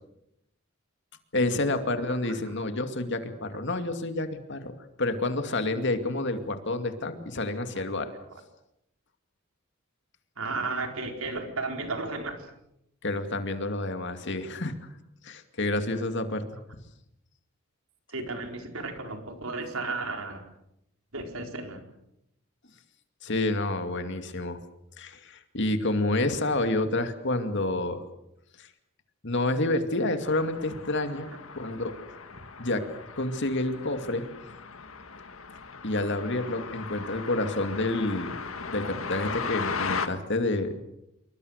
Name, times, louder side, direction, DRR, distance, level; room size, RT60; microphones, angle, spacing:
voice 1, 1.3-4.7 5.0-8.1 13.0-14.7 15.2-16.4 23.2-24.6 25.0-28.0 28.6-28.7 29.2-31.3 31.5-32.0 32.6-32.9 33.2-34.2 35.8-38.4 38.7-40.7, left 2 dB, 60° left, 7 dB, 2.5 m, -29 dB
voice 2, 10.4-12.5 18.1-20.4 21.1-21.8, right 3 dB, 90° right, 4 dB, 4.6 m, -33 dB
sound 1, 30.2-40.1, left 5 dB, 75° left, 1.8 m, -37 dB
27.5 x 23.0 x 6.6 m, 0.82 s
head